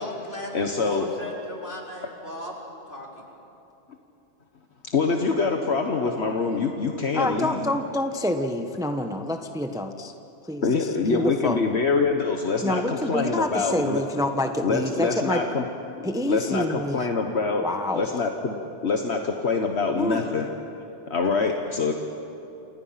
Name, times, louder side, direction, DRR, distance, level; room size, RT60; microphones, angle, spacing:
voice 1, 0.0-2.5 2.9-3.3, left 1 dB, 45° left, -2 dB, 4.6 m, -36 dB
voice 2, 0.5-1.1 4.9-7.8 10.6-14.0 14.6-15.6 16.3-17.6 17.9-18.6 18.8-20.5 21.1-21.9, left 4 dB, 65° left, 3 dB, 1.6 m, -25 dB
voice 3, 7.1-10.1 10.4-11.6 12.6-15.4 16.0-17.1 17.6-18.1 19.9-20.2, left 1 dB, 5° right, 6 dB, 1.0 m, -27 dB
29.5 x 27.5 x 5.9 m, 2.8 s
omnidirectional pair, 1.2 m